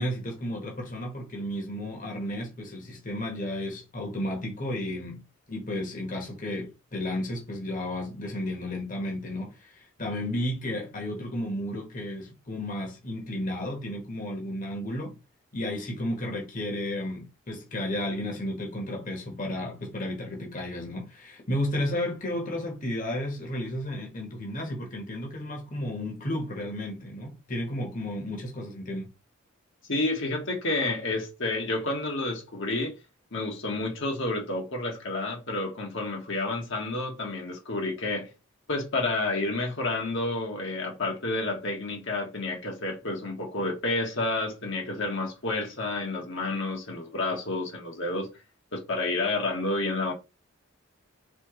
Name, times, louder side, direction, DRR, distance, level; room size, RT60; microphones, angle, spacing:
voice 1, 0.0-5.2 5.5-15.2 15.5-29.1, left 1 dB, 40° left, 1.3 m, -33 dB
voice 2, 29.9-32.9 33.3-38.3 38.7-48.3 48.7-50.1, left 2 dB, 60° left, 1.4 m, -30 dB
4.3 x 3.9 x 3.1 m
head